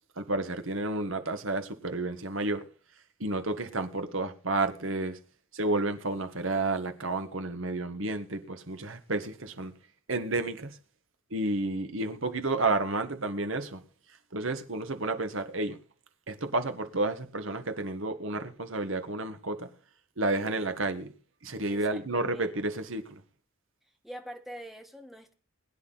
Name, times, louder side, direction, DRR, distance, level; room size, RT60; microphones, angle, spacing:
voice 1, 0.2-2.6 3.2-5.2 5.5-9.7 10.1-10.8 11.3-13.8 14.3-15.8 16.3-19.7 20.2-21.1 21.4-23.2, right 2 dB, 65° right, 1.6 m, -31 dB
voice 2, 21.7-22.6 24.0-25.3, equal, ahead, 1.4 m, -45 dB
21.0 x 9.9 x 4.0 m
head